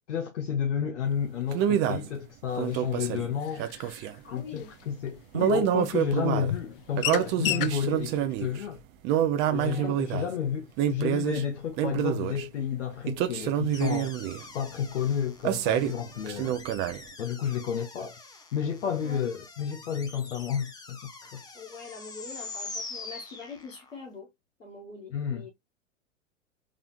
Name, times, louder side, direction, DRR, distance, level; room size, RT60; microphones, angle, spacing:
voice 1, 0.1-3.7 4.3-8.8 9.5-14.2 14.5-16.6 17.2-18.2 18.5-21.4 25.1-25.5, left 8 dB, 65° left, 0.9 m, -31 dB
sound 1, 1.5-2.1 2.6-4.2 5.3-6.5 7.0-8.6 9.0-10.3 10.8-11.4 11.8-12.5 13.1-14.4 15.4-16.0 16.3-17.0, right 10 dB, 30° right, 0.6 m, -27 dB
sound 2, 2.8-2.9 3.4-4.1 4.5-4.6 5.4-5.5 6.1-6.2 6.5-6.7 7.0-7.8, left 14 dB, 50° left, 0.4 m, -32 dB
voice 2, 4.2-4.7 9.4-9.9 19.0-19.3 21.5-24.3 24.6-25.5, left 4 dB, 80° left, 1.9 m, -44 dB
sound 3, 13.7-24.0, left 3 dB, 10° left, 0.8 m, -44 dB
3.8 x 3.4 x 2.4 m
figure-of-eight pair, 95°, 38 cm